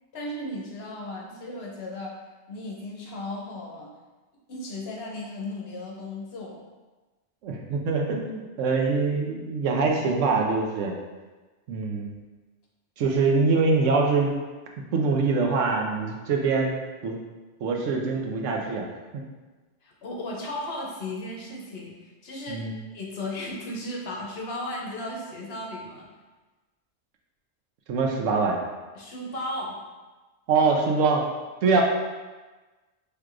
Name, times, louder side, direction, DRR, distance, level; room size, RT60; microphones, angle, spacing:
voice 1, 0.1-2.2 2.5-3.9 4.5-6.6 13.1-13.2 19.8-22.6 22.9-26.1 28.9-29.8, left 1 dB, 60° left, -2 dB, 0.9 m, -35 dB
voice 2, 7.4-11.0 11.7-12.1 13.0-14.3 14.9-16.7 17.0-17.2 17.6-18.9 19.1-19.2 22.5-22.7 27.9-28.6 30.5-31.2 31.6-31.8, right 4 dB, 85° right, 1 dB, 1.0 m, -24 dB
4.5 x 3.3 x 2.5 m, 1.2 s
omnidirectional pair, 1.2 m